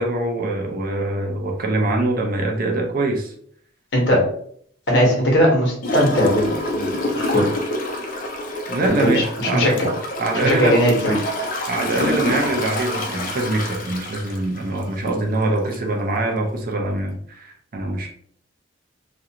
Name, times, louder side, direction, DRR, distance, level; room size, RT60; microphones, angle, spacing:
voice 1, 0.0-3.3 4.1-4.3 8.7-9.7 10.2-10.8 11.7-18.1, right 2 dB, 45° right, 2 dB, 0.4 m, -23 dB
voice 2, 4.9-7.5 8.9-9.9 10.4-11.4, equal, 60° left, -2 dB, 1.0 m, -19 dB
Gurgling / Toilet flush, 5.8-15.2 15.7-15.8, left 1 dB, 40° left, 0.4 m, -27 dB
2.4 x 2.2 x 2.8 m, 0.63 s
head